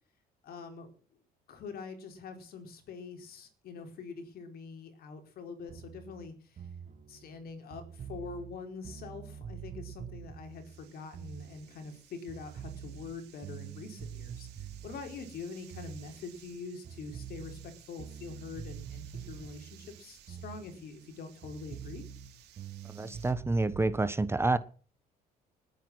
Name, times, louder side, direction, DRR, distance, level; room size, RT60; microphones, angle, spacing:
voice 1, 0.4-0.9 1.5-6.6 7.1-22.0, left 4 dB, 65° left, 7 dB, 4.5 m, -44 dB
sound 1, 5.7-12.0 12.3-16.6 16.8-21.1 21.4-24.0, right 8 dB, 45° right, 1.6 m, -46 dB
sound 2, 10.1-23.3, right 12 dB, 80° right, 3.3 m, -59 dB
voice 2, 22.8-24.6, right 2 dB, 15° right, 14 dB, 1.0 m, -28 dB
20.0 x 9.3 x 6.3 m, 0.41 s
cardioid pair, 110°, 17 cm